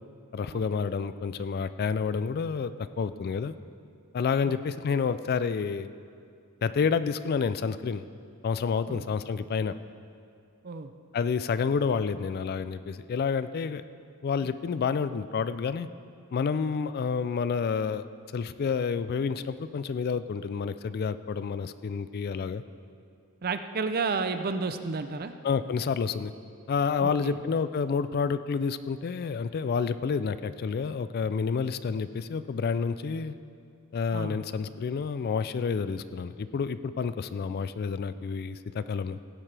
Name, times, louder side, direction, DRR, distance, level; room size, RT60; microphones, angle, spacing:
voice 1, 0.3-3.5 4.1-5.9 6.6-8.0 8.4-9.8 11.1-13.8 14.2-15.9 16.3-18.1 18.3-22.6 25.4-26.3 26.7-33.4 33.9-39.2, left 5 dB, 45° left, 13 dB, 0.3 m, -29 dB
voice 2, 23.4-25.3 27.0-27.4 34.1-34.4, right 4 dB, 45° right, 9 dB, 0.5 m, -32 dB
16.0 x 11.0 x 3.4 m, 2.3 s
head